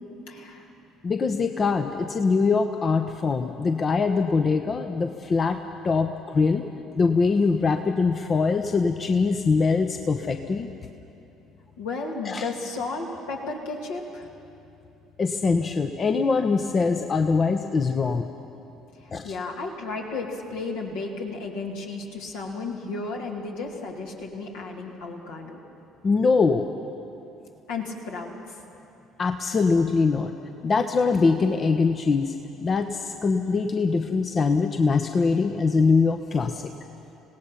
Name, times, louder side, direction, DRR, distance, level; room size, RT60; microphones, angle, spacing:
voice 1, 0.3-0.7 11.8-14.3 19.0-25.6 27.7-28.3, left 3 dB, 70° left, -1 dB, 2.5 m, -33 dB
voice 2, 1.0-5.6 5.8-6.7 6.9-10.7 12.2-12.5 15.2-18.3 19.1-19.4 26.0-26.7 29.2-30.3 30.6-32.3 32.6-36.7, left 4 dB, 35° left, 6 dB, 0.8 m, -23 dB
26.5 x 17.5 x 5.7 m, 2.8 s
figure-of-eight pair, 55°, 0 cm